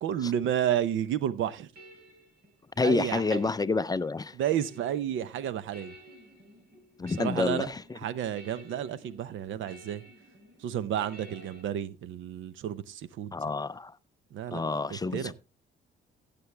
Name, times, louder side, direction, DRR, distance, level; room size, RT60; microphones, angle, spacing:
voice 1, 0.0-1.7 2.8-3.5 4.4-5.9 7.2-7.7 8.0-10.0 10.6-13.4 14.3-14.6 14.9-15.3, right 10 dB, 80° right, 0.7 m, -31 dB
sound 1, 1.1-11.6, equal, 55° right, 4.2 m, -53 dB
voice 2, 2.8-4.4 7.0-8.0 13.3-14.0 14.5-15.3, left 3 dB, 20° left, 0.4 m, -29 dB
15.5 x 6.9 x 3.3 m
cardioid pair, 90°, 20 cm